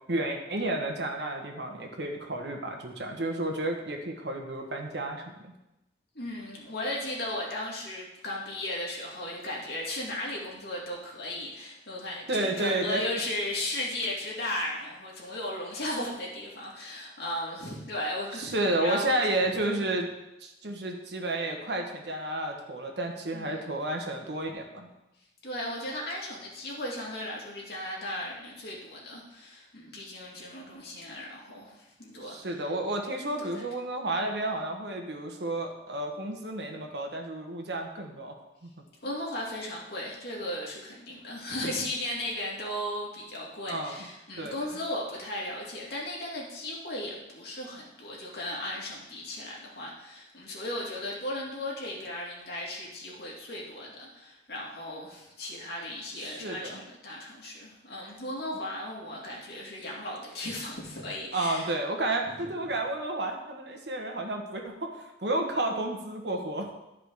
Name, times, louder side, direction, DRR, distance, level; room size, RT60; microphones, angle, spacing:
voice 1, 0.1-5.5 12.3-13.0 18.4-20.1 20.4-24.9 32.2-38.3 38.6-38.7 43.7-44.0 44.4-44.7 56.2-56.8 61.3-64.9 65.2-66.7, right 1 dB, 65° right, 2 dB, 1.3 m, -31 dB
voice 2, 6.1-19.2 23.3-23.7 25.4-32.6 33.4-33.7 39.0-61.7, left 1 dB, 60° left, -3 dB, 2.3 m, -36 dB
12.0 x 5.0 x 4.7 m, 0.94 s
head